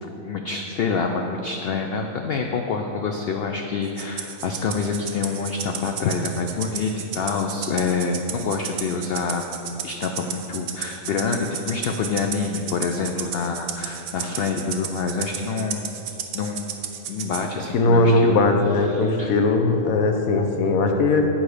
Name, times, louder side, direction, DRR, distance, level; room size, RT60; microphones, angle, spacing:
voice 1, 0.0-9.4 9.8-15.9 16.3-16.7 17.1-18.4 18.8-19.4, left 5 dB, 65° left, 4 dB, 0.6 m, -27 dB
Rattle (instrument), 4.0-17.5, right 8 dB, 70° right, 1.0 m, -33 dB
voice 2, 17.7-21.3, left 2 dB, 80° left, 4 dB, 1.2 m, -19 dB
8.8 x 5.6 x 4.9 m, 3.0 s
omnidirectional pair, 1.4 m